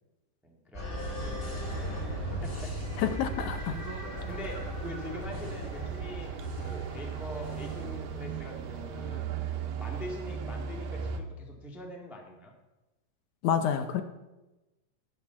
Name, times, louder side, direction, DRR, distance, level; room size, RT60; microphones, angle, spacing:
voice 1, 0.4-2.9 3.6-9.3 9.8-12.5, equal, ahead, 0 dB, 0.9 m, -44 dB
sound 1, 0.7-9.0, right 1 dB, 25° left, 3.9 m, -38 dB
sound 2, 1.0-11.2, right 6 dB, 85° right, 2.8 m, -38 dB
voice 2, 3.0-3.8 13.4-14.0, left 8 dB, 75° left, 8 dB, 2.0 m, -28 dB
12.5 x 9.6 x 7.0 m, 1.1 s
omnidirectional pair, 3.9 m